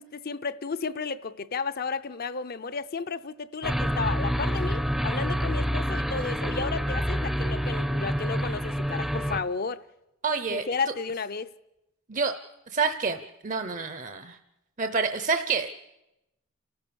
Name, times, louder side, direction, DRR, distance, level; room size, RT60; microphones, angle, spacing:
voice 1, 0.0-9.8 10.5-11.5, left 4 dB, 45° left, 0.6 m, -33 dB
sound 1, 3.6-9.4, equal, ahead, 0.6 m, -27 dB
voice 2, 10.2-10.7 12.1-12.3 12.7-14.4 14.8-15.7, right 4 dB, 35° right, 0.7 m, -28 dB
29.5 x 13.5 x 7.0 m
head